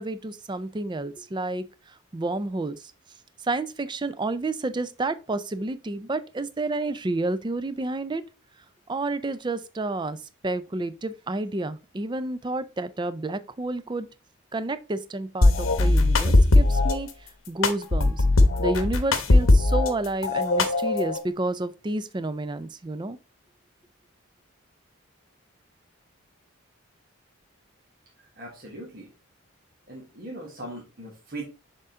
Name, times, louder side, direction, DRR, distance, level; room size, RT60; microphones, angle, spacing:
voice 1, 0.0-2.9 3.4-8.2 8.9-10.2 10.4-14.1 14.5-18.2 18.6-23.2, right 2 dB, 20° right, 0.4 m, -30 dB
sound 1, 15.4-17.0 17.6-19.9 20.2-21.2, left 2 dB, 70° left, 0.9 m, -19 dB
voice 2, 28.4-29.1 29.9-31.4, right 1 dB, 45° right, 1.3 m, -39 dB
6.7 x 3.7 x 3.8 m
head